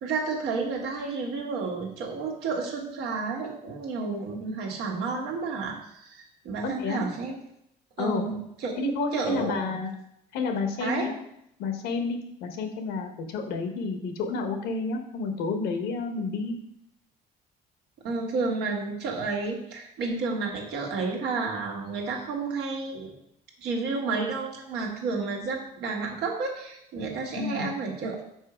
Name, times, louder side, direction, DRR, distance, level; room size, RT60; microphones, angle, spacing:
voice 1, 0.0-7.4 8.0-8.7 9.1-9.6 10.8-11.1 18.0-23.1 23.6-28.2, right 4 dB, 85° right, 0 dB, 1.5 m, -31 dB
voice 2, 6.6-7.0 8.0-8.2 8.8-9.9 10.3-11.1 11.6-16.5 27.4-27.7, left 3 dB, 90° left, 5 dB, 1.1 m, -30 dB
5.4 x 4.5 x 5.0 m, 0.77 s
cardioid pair, 110°, 17 cm